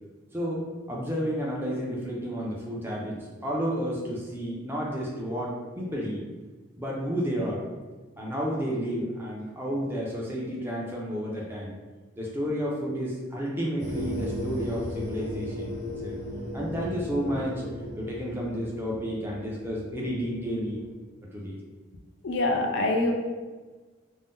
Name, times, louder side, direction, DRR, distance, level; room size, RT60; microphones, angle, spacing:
voice 1, 0.3-6.2 6.8-7.6 8.2-11.7 12.2-15.7 16.0-16.2 16.5-17.6 17.9-20.8 21.3-21.6, equal, 10° right, -4 dB, 0.4 m, -31 dB
sound 1, 13.8-20.9, left 1 dB, 35° right, 1.0 m, -36 dB
voice 2, 22.2-23.1, left 2 dB, 65° left, 1 dB, 0.4 m, -25 dB
2.6 x 2.1 x 3.5 m, 1.3 s
head